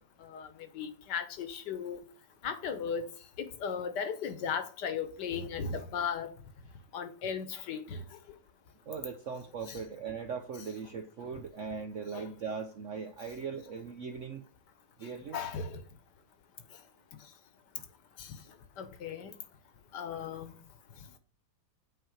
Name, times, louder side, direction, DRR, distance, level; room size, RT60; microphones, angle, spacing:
voice 1, 0.7-2.0 2.4-3.1 3.4-6.3 6.9-8.0 9.7-9.8 12.1-12.3 15.3-15.8 18.2-18.3 18.8-19.3 19.9-20.6, left 6 dB, 65° left, 1.5 m, -36 dB
voice 2, 8.9-14.4 15.0-15.4, right 5 dB, 75° right, 0.6 m, -39 dB
8.3 x 4.3 x 6.3 m
omnidirectional pair, 2.1 m